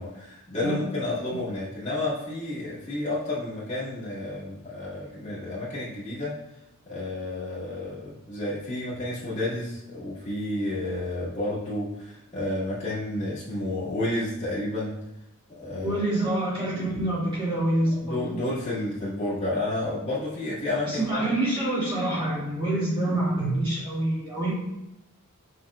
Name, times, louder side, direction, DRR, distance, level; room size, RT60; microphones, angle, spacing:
voice 1, 0.0-6.4 6.8-14.9 15.5-16.0 17.9-21.2, left 2 dB, 30° left, -12 dB, 1.7 m, -31 dB
voice 2, 15.8-18.4 20.9-24.5, right 1 dB, 25° right, -8 dB, 2.2 m, -26 dB
6.9 x 5.6 x 2.4 m, 0.90 s
head